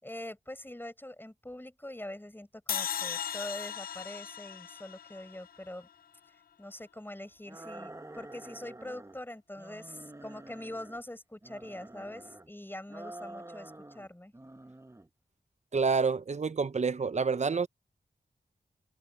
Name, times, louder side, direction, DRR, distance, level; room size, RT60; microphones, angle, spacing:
voice 1, 0.0-5.9 6.6-14.3, left 1 dB, 15° left, 5.8 m, -44 dB
sound 1, 2.7-5.9, left 8 dB, 70° left, 0.4 m, -37 dB
sound 2, 7.5-9.2 9.6-11.0 11.4-12.5 12.9-14.1 14.3-15.1, right 2 dB, 20° right, 1.3 m, -48 dB
voice 2, 15.7-17.7, right 5 dB, 45° right, 0.7 m, -28 dB
wide cardioid pair, 70°, 16 cm